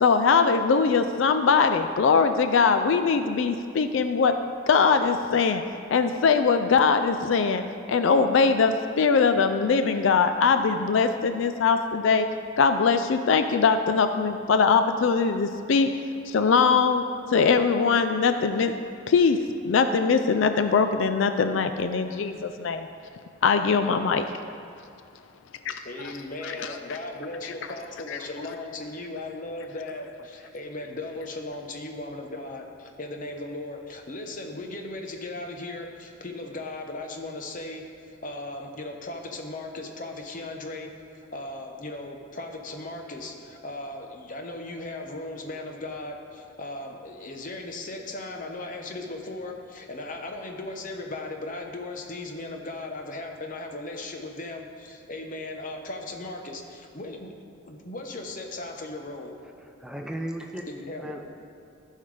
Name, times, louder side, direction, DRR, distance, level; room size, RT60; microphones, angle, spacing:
voice 1, 0.0-4.3 4.7-5.6 5.9-7.6 7.9-12.3 12.6-15.9 16.3-17.0 17.3-18.7 19.1-19.4 19.6-22.9 23.4-24.2 25.7-25.8 26.4-26.7 27.4-27.5, left 5 dB, 70° left, 8 dB, 0.4 m, -21 dB
voice 2, 25.8-57.3 57.6-59.3 60.7-61.2, left 2 dB, 40° left, 3 dB, 0.9 m, -37 dB
voice 3, 59.6-60.6 61.0-61.2, right 1 dB, 5° right, 2 dB, 0.4 m, -35 dB
15.0 x 5.6 x 3.3 m, 2.4 s
head